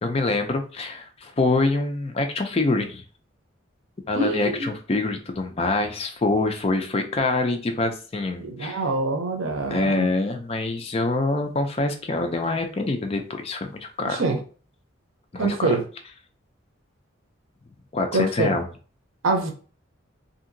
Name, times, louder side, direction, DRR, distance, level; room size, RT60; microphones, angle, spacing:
voice 1, 0.0-3.0 4.1-8.8 9.7-14.2 15.3-15.7 17.9-18.7, left 2 dB, 30° left, 5 dB, 0.4 m, -25 dB
voice 2, 4.1-4.7 8.4-10.1 14.0-14.4 15.4-15.8 18.1-18.6 19.2-19.5, right 3 dB, 85° right, 4 dB, 0.7 m, -25 dB
2.7 x 2.7 x 2.6 m, 0.39 s
head